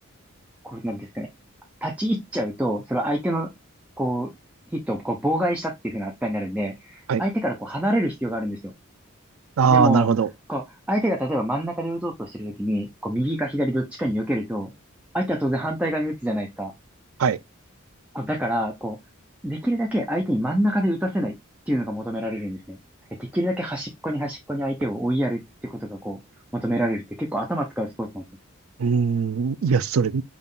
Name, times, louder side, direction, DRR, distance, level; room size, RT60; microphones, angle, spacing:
voice 1, 0.6-1.3 1.8-3.5 4.0-4.3 4.7-8.7 9.7-10.1 10.5-14.7 15.1-16.7 18.1-19.0 19.4-21.3 21.7-22.8 23.2-26.2 26.5-28.2, equal, 5° right, 0.5 m, -26 dB
voice 2, 9.6-10.3 17.2-17.4 28.8-30.2, right 5 dB, 80° right, 0.4 m, -20 dB
5.4 x 2.5 x 3.7 m
head